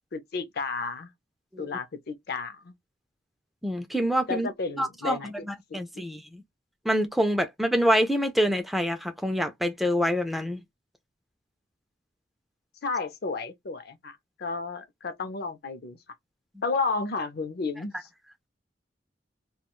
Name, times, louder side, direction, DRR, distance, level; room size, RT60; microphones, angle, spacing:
voice 1, 0.1-1.1 1.6-2.7 4.3-5.3 5.7-6.0 12.8-16.0 16.6-17.9, left 4 dB, 60° left, 0.5 m, -32 dB
voice 2, 3.6-4.5 4.8-6.4 6.9-10.6, equal, ahead, 0.3 m, -26 dB
2.3 x 2.2 x 2.9 m
head